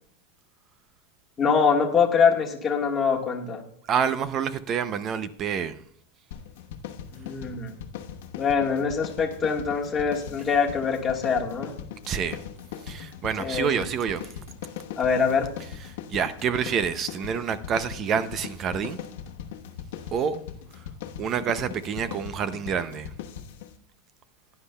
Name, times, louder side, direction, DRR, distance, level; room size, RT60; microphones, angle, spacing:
voice 1, 1.4-3.6 7.2-7.7 8.4-11.7 13.4-13.7 15.0-15.5, left 6 dB, 15° left, 1.4 m, -24 dB
voice 2, 3.9-5.8 12.1-12.4 12.9-14.3 16.1-19.0 20.1-20.4 21.2-23.1, right 7 dB, 25° right, 0.5 m, -27 dB
sound 1, 6.3-23.8, left 8 dB, 75° left, 1.1 m, -40 dB
16.5 x 9.9 x 2.2 m
supercardioid pair, 165°, 0 cm